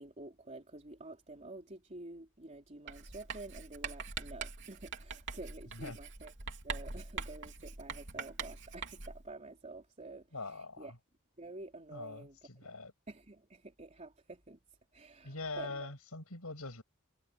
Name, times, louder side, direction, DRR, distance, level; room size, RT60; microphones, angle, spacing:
voice 1, 0.0-6.3 6.6-10.9 11.4-12.7 13.1-14.6 14.9-15.9, right 2 dB, 30° right, 3.4 m, -49 dB
Writing, 2.9-9.3, right 5 dB, 55° right, 3.0 m, -43 dB
voice 2, 10.3-10.9 11.9-12.9 15.2-16.8, left 3 dB, 75° left, 6.8 m, -43 dB
head